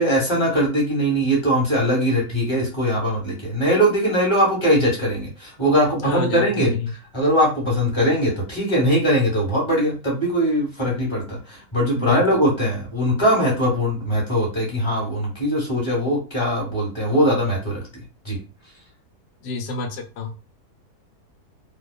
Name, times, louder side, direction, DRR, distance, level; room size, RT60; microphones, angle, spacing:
voice 1, 0.0-6.7 7.1-17.8 18.2-18.4, equal, 20° left, -3 dB, 1.1 m, -21 dB
voice 2, 6.0-6.9 11.9-12.2 19.4-20.3, left 2 dB, 85° left, 4 dB, 1.1 m, -28 dB
2.6 x 2.2 x 2.2 m, 0.32 s
omnidirectional pair, 1.7 m